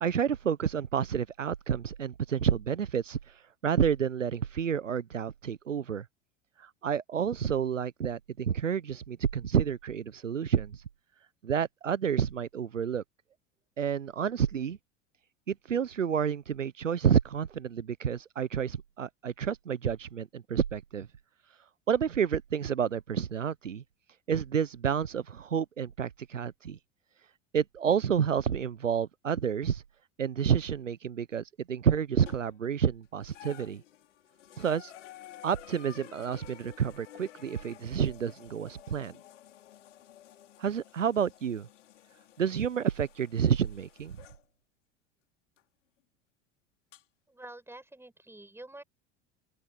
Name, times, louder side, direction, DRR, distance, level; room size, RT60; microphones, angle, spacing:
voice 1, 0.0-3.2 3.6-6.0 6.6-10.8 11.4-13.0 13.8-14.8 15.5-21.1 21.9-23.8 24.3-26.8 27.5-29.8 30.2-33.8 34.6-34.9 35.4-39.1 40.6-41.7 42.4-44.2, right 8 dB, 90° right, 0.9 m, -29 dB
sound 1, 32.3-32.7 33.2-44.4 45.6-45.7 46.9-47.0, left 12 dB, 75° left, 4.7 m, -52 dB
voice 2, 47.3-48.8, right 1 dB, 5° right, 6.7 m, -47 dB
open air
figure-of-eight pair, 80°, 37 cm